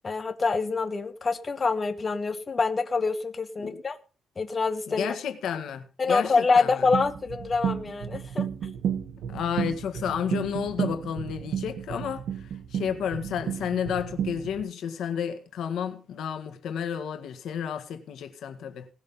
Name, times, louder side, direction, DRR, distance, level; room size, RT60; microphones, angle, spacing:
voice 1, 0.0-4.0 4.4-5.1 6.0-8.7, left 4 dB, 30° left, 1.4 m, -26 dB
voice 2, 4.9-6.9 9.3-18.9, left 8 dB, 85° left, 1.8 m, -31 dB
sound 1, 6.9-14.6, right 8 dB, 85° right, 1.3 m, -32 dB
18.0 x 6.4 x 5.5 m
cardioid pair, 125°, 0 cm